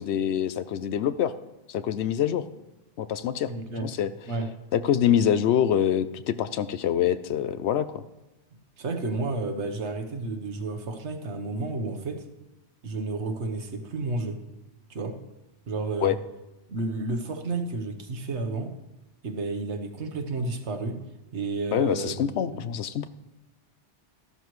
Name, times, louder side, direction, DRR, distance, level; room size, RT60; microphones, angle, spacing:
voice 1, 0.0-1.3 1.7-2.4 3.0-3.5 3.8-4.1 4.7-8.0 16.0-16.2 21.7-23.1, left 9 dB, 70° left, 13 dB, 0.8 m, -25 dB
voice 2, 3.5-3.9 4.3-4.5 8.8-12.2 12.8-14.4 14.9-15.2 15.7-16.1 16.7-18.7 19.2-21.0 21.3-22.6, right 3 dB, 70° right, 6 dB, 1.4 m, -31 dB
14.0 x 12.0 x 3.1 m, 1.0 s
omnidirectional pair, 1.2 m